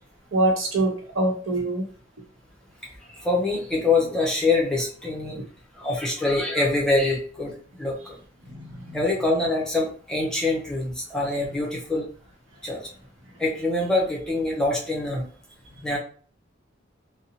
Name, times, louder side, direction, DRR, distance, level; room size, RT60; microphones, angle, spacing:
voice 1, 0.3-1.8 8.5-9.0, right 2 dB, 90° right, 0 dB, 0.8 m, -24 dB
voice 2, 2.8-5.4 5.8-7.5 7.8-8.1 8.9-12.1 12.6-12.8 13.4-15.3 15.8-16.0, left 2 dB, 5° left, -3 dB, 0.5 m, -24 dB
2.6 x 2.0 x 2.8 m, 0.43 s
head